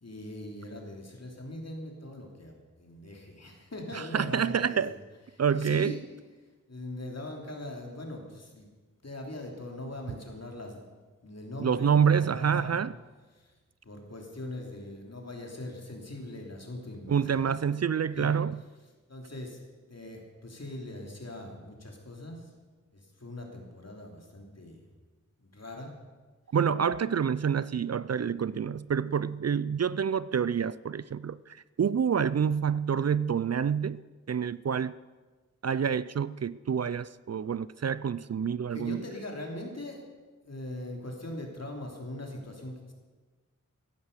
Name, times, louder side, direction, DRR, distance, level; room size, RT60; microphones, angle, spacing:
voice 1, 0.0-5.0 5.3-6.0 6.7-8.7 9.0-10.8 11.2-12.8 13.3-13.5 13.8-17.1 18.1-18.3 19.1-22.5 22.9-24.9 25.4-25.9 28.1-28.3 38.7-40.0 40.4-42.9, left 1 dB, 55° left, 1 dB, 3.1 m, -41 dB
voice 2, 3.9-4.9 5.4-6.0 11.6-12.9 17.1-18.6 26.5-34.0 34.3-34.9 35.6-39.0, right 7 dB, 55° right, 18 dB, 0.4 m, -27 dB
15.5 x 11.0 x 6.6 m, 1.3 s
wide cardioid pair, 70°, 32 cm